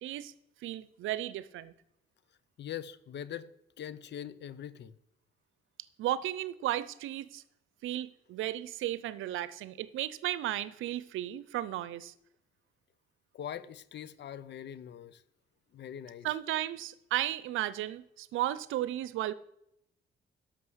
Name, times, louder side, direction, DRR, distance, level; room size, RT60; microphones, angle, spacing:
voice 1, 0.0-0.3 0.6-1.7 6.0-7.4 7.8-12.1 16.2-19.3, right 13 dB, 85° right, 0.7 m, -34 dB
voice 2, 2.6-3.5 3.8-4.9 13.3-15.2 15.7-16.3, left 10 dB, 60° left, 0.8 m, -42 dB
11.5 x 6.5 x 8.0 m
cardioid pair, 90°, 20 cm